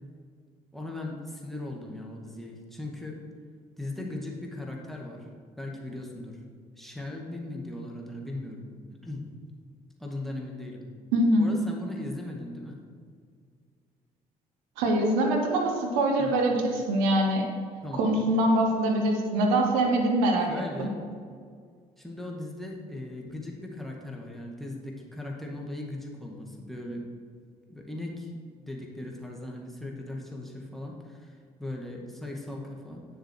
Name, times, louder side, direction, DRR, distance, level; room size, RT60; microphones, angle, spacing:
voice 1, 0.7-3.2 3.8-5.3 5.6-6.4 6.8-8.7 9.0-9.2 10.0-10.8 11.4-12.8 16.2-16.4 17.8-18.1 20.5-21.0 22.0-27.1 27.7-28.3 28.6-33.0, left 2 dB, ahead, 0 dB, 2.0 m, -38 dB
voice 2, 11.1-11.5 14.8-17.5 17.9-20.5 20.8-20.9, right 1 dB, 80° right, 2 dB, 1.4 m, -24 dB
9.5 x 6.9 x 4.7 m, 2.1 s
hypercardioid pair, 50°, 18 cm